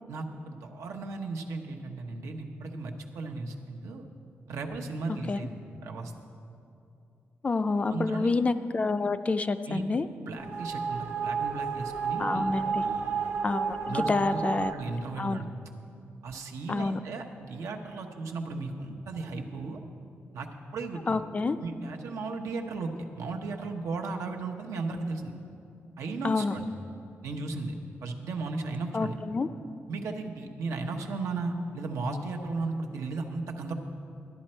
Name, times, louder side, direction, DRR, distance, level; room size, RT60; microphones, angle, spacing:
voice 1, 0.1-4.1 4.5-6.1 7.9-8.3 9.7-9.8 10.2-13.0 13.8-15.5 16.2-19.8 20.3-21.2 21.6-25.3 26.0-26.7 27.2-27.7 28.0-29.2 29.9-33.7, right 3 dB, 90° right, 3 dB, 0.9 m, -35 dB
voice 2, 5.1-5.4 7.4-10.1 12.2-12.8 13.4-14.7 15.2-15.4 16.7-17.0 21.1-21.6 26.2-26.6 28.9-29.5, left 3 dB, 25° left, 11 dB, 0.3 m, -28 dB
sound 1, 10.4-14.7, right 5 dB, 50° right, 0.8 m, -31 dB
12.0 x 11.0 x 4.4 m, 2.7 s
wide cardioid pair, 130°, 5 cm